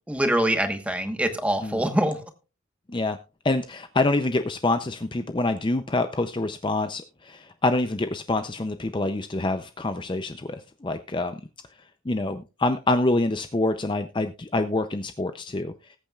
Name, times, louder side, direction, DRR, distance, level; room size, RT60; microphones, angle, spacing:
voice 1, 0.1-2.2, right 1 dB, 5° right, 7 dB, 1.2 m, -24 dB
voice 2, 3.4-11.4 12.1-15.7, left 2 dB, 25° left, 9 dB, 0.5 m, -26 dB
20.0 x 8.6 x 2.4 m, 0.30 s
head